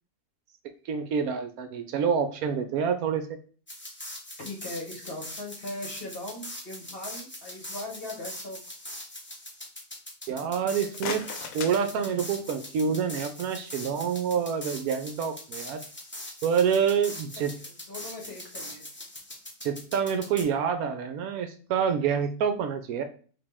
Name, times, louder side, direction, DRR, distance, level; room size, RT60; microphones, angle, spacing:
voice 1, 0.9-3.3 10.3-11.2 11.5-15.8 16.4-17.5 19.6-23.0, right 7 dB, 75° right, 8 dB, 1.0 m, -27 dB
sound 1, 3.7-20.4, left 1 dB, 10° left, 0.5 m, -42 dB
voice 2, 4.4-8.6 17.3-18.8, left 1 dB, 45° left, 0 dB, 1.1 m, -39 dB
sound 2, 10.8-12.7, left 6 dB, 70° left, 1.0 m, -39 dB
5.1 x 2.8 x 3.5 m, 0.41 s
omnidirectional pair, 1.6 m